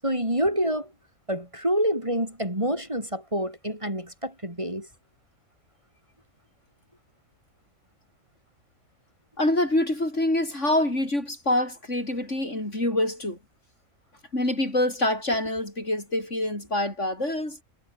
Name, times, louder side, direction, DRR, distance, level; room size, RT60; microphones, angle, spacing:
voice 1, 0.0-0.9 1.3-4.9, equal, 20° right, 7.4 m, -27 dB
voice 2, 9.4-13.4 14.3-17.6, left 1 dB, 55° left, 7.7 m, -26 dB
omnidirectional pair, 1.5 m